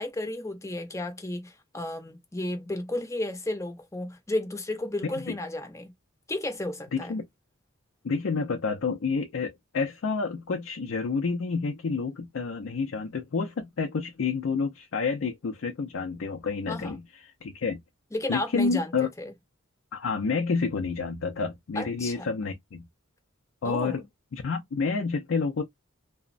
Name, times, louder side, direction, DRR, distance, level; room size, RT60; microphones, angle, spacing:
voice 1, 0.0-5.9 6.3-7.2 16.7-17.0 18.1-19.3 21.8-22.3 23.6-24.0, left 1 dB, 15° left, 0.6 m, -33 dB
voice 2, 6.9-7.3 8.0-17.0 17.4-17.8 18.3-19.1 19.9-22.9 23.6-24.0 24.3-25.6, left 4 dB, 70° left, 0.4 m, -29 dB
2.9 x 2.1 x 2.4 m
head